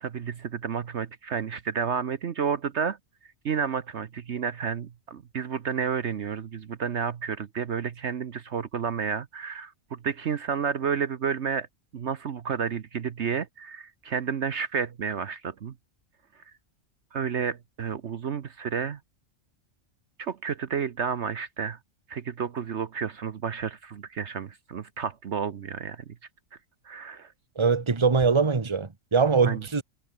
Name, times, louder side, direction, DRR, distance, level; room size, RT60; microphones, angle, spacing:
voice 1, 0.0-3.0 3.4-11.7 11.9-15.7 17.1-19.0 20.2-21.8 22.1-26.0 26.8-27.3 29.4-29.6, right 7 dB, 55° right, 1.2 m, -31 dB
voice 2, 27.5-29.8, right 5 dB, 20° right, 1.2 m, -22 dB
omnidirectional pair, 1.4 m